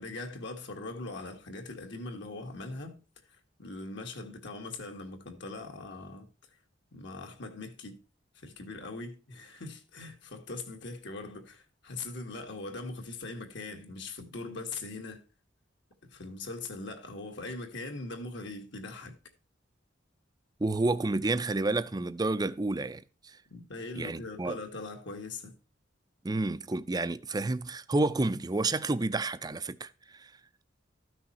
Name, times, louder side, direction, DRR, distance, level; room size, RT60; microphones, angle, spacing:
voice 1, 0.0-3.0 3.3-6.3 6.9-8.0 8.3-15.2 16.0-19.2 23.5-25.5, left 3 dB, 65° left, 1.9 m, -41 dB
voice 2, 20.6-23.0 24.0-24.6 26.2-29.9 30.2-30.3, right 2 dB, 20° right, 0.5 m, -30 dB
13.5 x 6.2 x 4.3 m
head